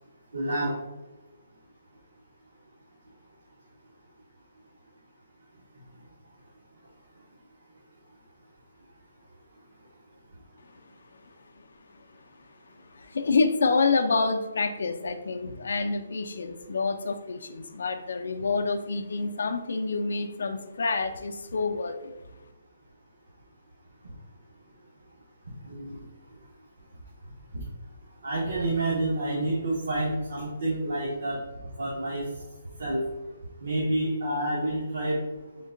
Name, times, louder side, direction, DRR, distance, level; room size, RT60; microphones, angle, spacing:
voice 1, 0.3-0.8 25.6-26.0 27.5-27.6 28.2-31.4 31.8-32.2 32.8-33.1 33.6-35.2, right 1 dB, 75° right, -4 dB, 0.9 m, -28 dB
voice 2, 12.9-22.1, left 4 dB, 70° left, 6 dB, 0.4 m, -28 dB
3.8 x 2.2 x 3.7 m, 1.1 s
hypercardioid pair, 175°, 0 cm